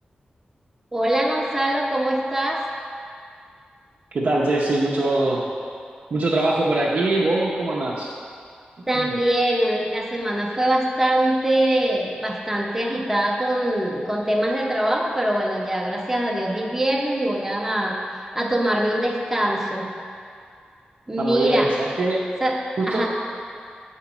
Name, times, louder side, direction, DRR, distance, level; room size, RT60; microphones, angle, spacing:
voice 1, 0.9-2.6 8.9-18.0 18.4-19.9 21.1-21.7 22.4-22.6 22.9-23.1, right 1 dB, 10° right, -2 dB, 0.6 m, -23 dB
voice 2, 4.1-5.4 6.1-8.1 8.9-9.1 21.2-22.3 22.8-23.1, right 2 dB, 70° right, -5 dB, 0.8 m, -22 dB
7.7 x 4.2 x 6.0 m, 2.3 s
wide cardioid pair, 140°, 3 cm